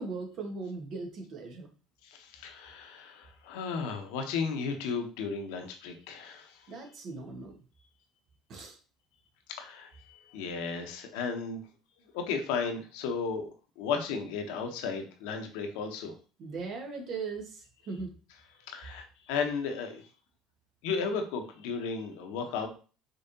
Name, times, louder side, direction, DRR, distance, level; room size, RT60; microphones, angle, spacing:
voice 1, 0.0-1.7 6.7-7.6 8.5-8.8 16.4-18.1, right 4 dB, 55° right, 2 dB, 1.4 m, -39 dB
voice 2, 2.0-6.7 9.5-11.6 12.1-13.5 13.8-16.1 18.7-20.1 20.8-22.7, left 5 dB, 70° left, 5 dB, 0.9 m, -34 dB
5.3 x 3.3 x 2.8 m, 0.36 s
hypercardioid pair, 65°, 0 cm